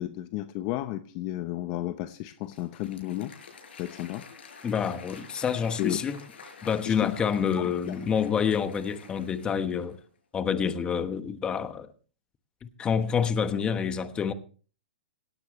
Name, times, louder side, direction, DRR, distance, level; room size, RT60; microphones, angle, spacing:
voice 1, 0.0-3.3 3.8-4.3 5.8-6.0 6.8-7.1 7.6-7.7, left 15 dB, 35° left, 0.8 m, -33 dB
Applause / Crowd, 2.3-10.0, left 5 dB, 75° left, 6.8 m, -49 dB
voice 2, 4.6-6.2 6.6-10.0 10.3-11.9 12.6-14.3, left 7 dB, 15° left, 1.2 m, -28 dB
18.0 x 16.5 x 3.1 m
hypercardioid pair, 155°, 6 cm